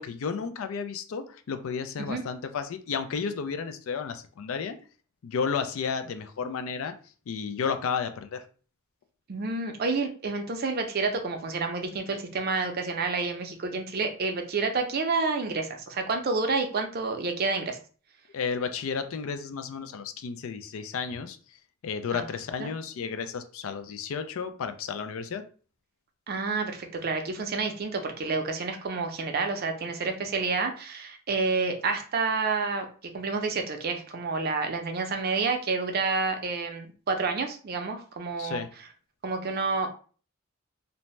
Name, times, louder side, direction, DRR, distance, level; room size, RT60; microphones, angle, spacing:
voice 1, 0.0-4.8 5.2-6.9 7.3-8.4 18.3-21.4 21.8-25.4 38.4-38.7, left 6 dB, 75° left, 9 dB, 0.4 m, -32 dB
voice 2, 9.3-17.8 22.1-22.2 22.6-22.7 26.3-32.9 33.1-38.6 39.2-39.9, right 4 dB, 45° right, 5 dB, 0.5 m, -29 dB
2.6 x 2.1 x 3.1 m, 0.40 s
head